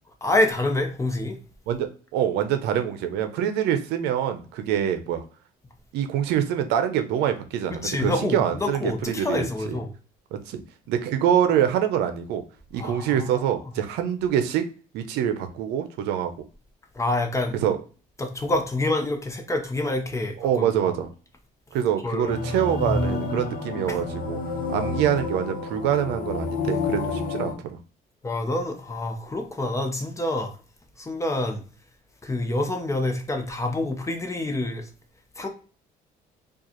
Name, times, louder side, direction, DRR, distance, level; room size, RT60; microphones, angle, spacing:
voice 1, 0.2-1.4 7.7-9.9 12.8-13.6 16.9-17.5 18.2-21.0 22.0-22.3 23.9-24.0 28.2-30.5 31.0-31.6 32.2-34.9 35.4-35.5, left 2 dB, 15° left, 0.8 m, -27 dB
voice 2, 1.7-5.2 5.9-9.8 10.3-10.6 10.9-12.4 12.7-14.7 14.9-16.3 17.6-17.8 20.4-21.1 21.7-24.4 24.7-27.8, right 9 dB, 85° right, 0.6 m, -25 dB
sound 1, 22.2-27.5, left 3 dB, 55° left, 0.9 m, -29 dB
4.6 x 2.4 x 2.9 m
cardioid pair, 110°, 17 cm